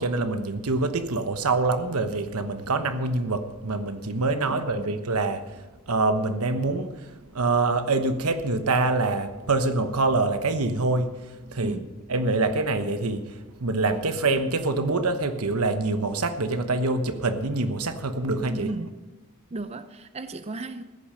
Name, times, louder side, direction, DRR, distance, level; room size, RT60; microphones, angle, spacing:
voice 1, 0.0-7.0 7.3-11.8 12.1-13.3 13.6-18.7, right 3 dB, 90° right, 1.1 m, -25 dB
voice 2, 4.4-5.0 11.6-12.0 18.5-19.1 19.5-20.8, right 2 dB, 30° right, 0.5 m, -35 dB
15.0 x 10.5 x 5.6 m
head